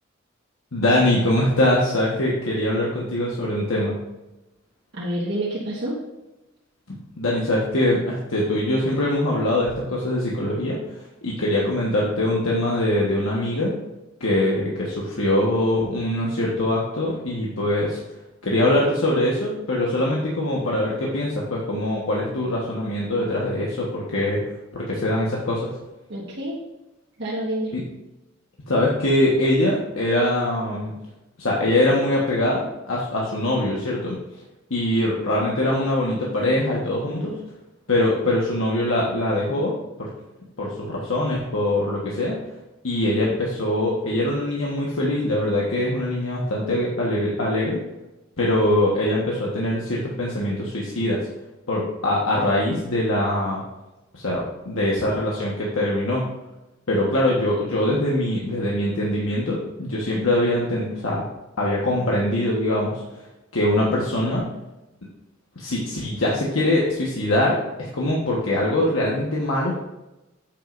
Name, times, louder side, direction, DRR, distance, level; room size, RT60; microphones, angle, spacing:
voice 1, 0.7-3.9 7.2-13.7 14.2-18.0 18.4-24.4 24.7-25.7 27.7-27.8 28.7-30.9 31.4-34.2 34.7-37.3 37.9-39.7 40.0-40.1 40.6-42.4 42.8-47.8 48.4-51.3 51.7-53.6 54.1-56.2 56.9-61.2 61.6-63.3 63.5-64.4 65.5-69.7, left 1 dB, 90° left, -4 dB, 1.3 m, -23 dB
voice 2, 4.9-6.0 26.1-26.6 27.2-27.7, right 1 dB, 60° right, -6 dB, 1.4 m, -28 dB
9.2 x 8.4 x 2.6 m, 1.0 s
head